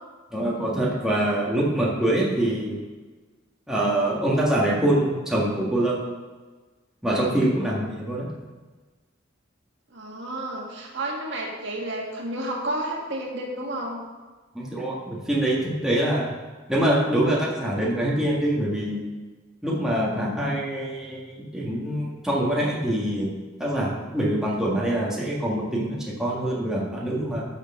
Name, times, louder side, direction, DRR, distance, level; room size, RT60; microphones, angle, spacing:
voice 1, 0.3-2.8 3.7-6.0 7.0-8.3 14.5-16.3 16.7-19.0 19.6-23.3 23.6-27.4, right 1 dB, 5° right, -5 dB, 1.6 m, -24 dB
voice 2, 9.9-14.0, right 1 dB, 60° right, -1 dB, 1.7 m, -31 dB
11.5 x 6.4 x 3.7 m, 1.3 s
head